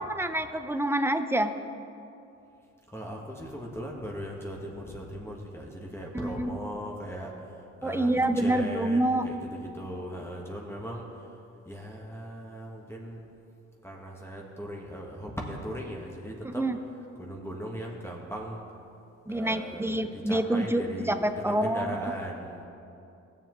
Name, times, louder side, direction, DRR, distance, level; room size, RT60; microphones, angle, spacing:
voice 1, 0.0-1.5 6.1-6.6 7.8-9.3 16.4-16.8 19.3-21.9, right 1 dB, 10° right, 9 dB, 0.4 m, -27 dB
voice 2, 2.9-11.3 11.6-13.2 13.8-16.6 17.2-18.6 19.3-22.6, equal, 10° left, -2 dB, 1.3 m, -38 dB
16.0 x 7.4 x 3.0 m, 2.7 s
cardioid pair, 90°, 30 cm